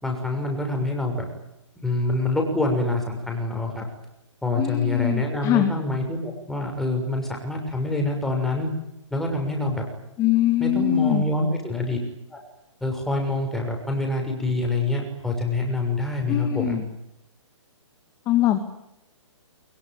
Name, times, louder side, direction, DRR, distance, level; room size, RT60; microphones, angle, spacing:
voice 1, 0.0-1.2 1.8-3.9 4.4-8.7 9.1-9.8 10.6-12.0 12.3-12.4 12.8-16.8, left 2 dB, ahead, 2 dB, 6.5 m, -26 dB
voice 2, 4.6-5.7 10.2-11.2 16.3-16.9 18.3-18.6, left 12 dB, 20° left, 7 dB, 2.1 m, -22 dB
24.0 x 22.5 x 9.3 m, 0.86 s
hypercardioid pair, 150°, 16 cm